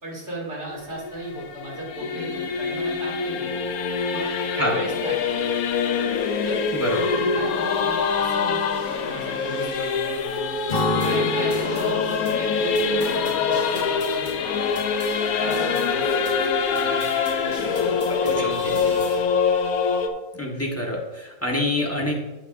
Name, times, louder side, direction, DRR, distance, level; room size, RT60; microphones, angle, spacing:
voice 1, 0.0-3.5 4.1-5.4 6.4-6.6 7.0-10.2 11.0-14.4 15.4-17.6 18.0-19.3, right 2 dB, 50° right, -3 dB, 2.8 m, -36 dB
Singing / Musical instrument, 0.7-20.1, left 5 dB, 80° left, 1.2 m, -24 dB
sound 1, 4.8-19.2, equal, 85° right, 3.6 m, -43 dB
Acoustic guitar / Strum, 10.7-14.3, left 2 dB, 35° left, 1.1 m, -30 dB
voice 2, 18.1-18.8 20.4-22.2, left 1 dB, 10° left, -2 dB, 1.3 m, -26 dB
12.0 x 8.1 x 2.6 m, 1.0 s
omnidirectional pair, 1.5 m